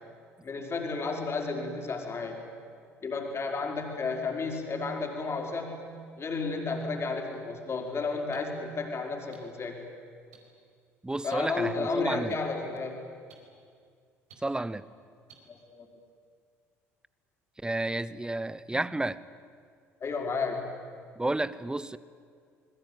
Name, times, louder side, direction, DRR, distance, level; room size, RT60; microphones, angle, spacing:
voice 1, 0.4-2.4 3.0-5.8 6.2-9.8 11.2-13.0 15.5-15.9 20.0-20.8, left 4 dB, 35° left, 5.1 m, -32 dB
sound 1, 7.3-7.4 8.3-8.4 9.3-9.4 10.3-10.4 11.3-11.4 12.3-12.4 13.3-13.4 14.3-14.4 15.3-15.4, right 8 dB, 75° right, 4.7 m, -52 dB
voice 2, 11.0-12.3 14.4-14.8 17.6-19.2 21.2-22.0, right 2 dB, 10° right, 1.0 m, -31 dB
27.0 x 21.5 x 9.4 m
figure-of-eight pair, 60°, 8 cm